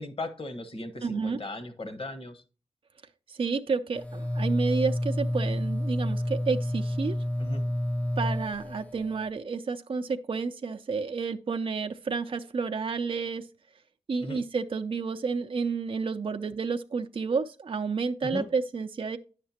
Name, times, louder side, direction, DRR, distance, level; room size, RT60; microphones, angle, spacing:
voice 1, 0.0-2.4 7.4-7.6 14.2-14.4 18.2-18.5, left 2 dB, 50° left, 1.3 m, -37 dB
voice 2, 1.0-1.4 3.3-7.2 8.2-13.5 14.1-19.2, right 4 dB, 50° right, 0.5 m, -30 dB
sound 1, 4.0-9.3, left 1 dB, 10° left, 0.5 m, -29 dB
10.0 x 6.6 x 2.8 m
cardioid pair, 50°, 12 cm